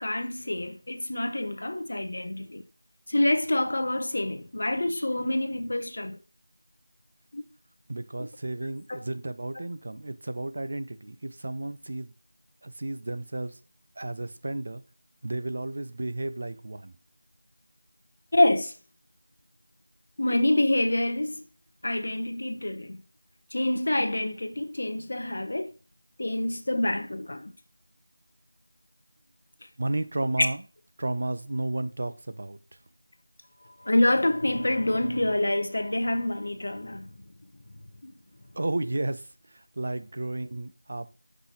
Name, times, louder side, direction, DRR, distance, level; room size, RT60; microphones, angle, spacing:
voice 1, 0.0-2.6 3.1-6.2 7.3-7.4 8.9-9.0 18.3-18.7 20.2-21.4 21.8-23.0 23.5-25.7 26.2-27.5 33.8-37.1, left 1 dB, 50° left, 0.8 m, -26 dB
voice 2, 7.9-12.1 12.6-13.6 14.0-14.8 15.2-17.0 29.8-30.6 31.0-32.8 38.5-41.1, right 2 dB, 40° right, 0.5 m, -33 dB
6.0 x 5.6 x 2.9 m
figure-of-eight pair, 175°, 0 cm